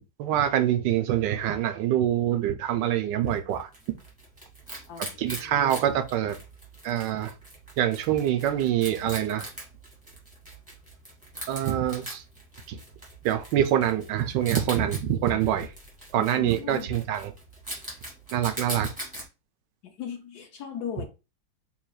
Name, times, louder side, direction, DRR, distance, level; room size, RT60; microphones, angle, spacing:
voice 1, 0.2-3.7 5.2-6.4 6.8-7.3 7.8-9.5 11.5-12.2 12.7-12.8 13.2-15.7 16.1-17.3 18.3-18.9, right 11 dB, 75° right, 1.1 m, -25 dB
Wild animals, 3.3-19.3, right 1 dB, 5° right, 1.7 m, -42 dB
voice 2, 4.9-5.9 16.2-16.9 19.8-21.1, left 8 dB, 65° left, 1.1 m, -38 dB
4.7 x 3.3 x 2.3 m
omnidirectional pair, 2.1 m